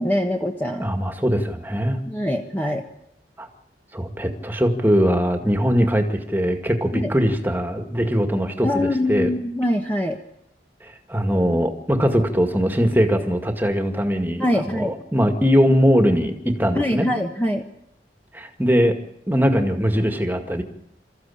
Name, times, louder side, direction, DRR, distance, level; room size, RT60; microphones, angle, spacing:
voice 1, 0.0-0.9 2.1-2.8 6.9-7.1 8.6-10.2 14.4-14.9 16.7-17.6, left 1 dB, 10° left, 2 dB, 1.3 m, -23 dB
voice 2, 0.8-2.0 3.4-3.5 3.9-9.3 10.8-17.1 18.3-19.0 19.3-20.6, equal, 10° right, 5 dB, 2.1 m, -21 dB
27.5 x 14.5 x 8.6 m, 0.81 s
head